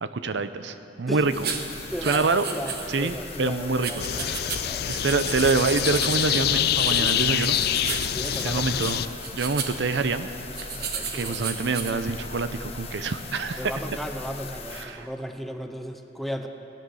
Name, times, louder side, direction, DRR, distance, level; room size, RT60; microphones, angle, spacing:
voice 1, 0.0-1.5 2.0-2.4 2.9-4.5 4.9-7.6 8.4-9.0 9.3-10.3 10.6-10.7 11.1-13.7 14.7-15.1, right 4 dB, 75° right, 11 dB, 0.6 m, -26 dB
sound 1, 1.1-14.8, left 4 dB, 35° left, 1.4 m, -40 dB
sound 2, 1.3-11.9, right 6 dB, 60° right, 1.1 m, -35 dB
voice 2, 1.9-2.3 2.5-4.9 6.9-7.3 8.1-8.6 10.8-11.5 13.6-16.5, equal, ahead, 5 dB, 0.7 m, -36 dB
sound 3, 4.0-9.1, left 11 dB, 60° left, 0.4 m, -26 dB
18.0 x 10.5 x 6.3 m, 2.9 s
head